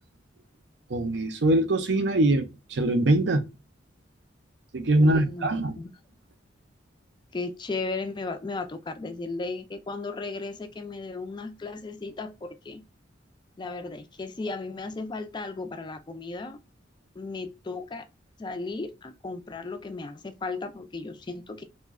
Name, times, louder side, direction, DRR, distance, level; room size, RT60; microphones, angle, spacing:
voice 1, 0.9-3.5 4.7-5.7, right 1 dB, 60° right, 0.5 m, -23 dB
voice 2, 5.0-5.9 7.3-12.8 13.6-16.6 17.1-18.1 18.4-21.6, left 3 dB, 25° left, 0.4 m, -35 dB
3.0 x 2.1 x 3.5 m
head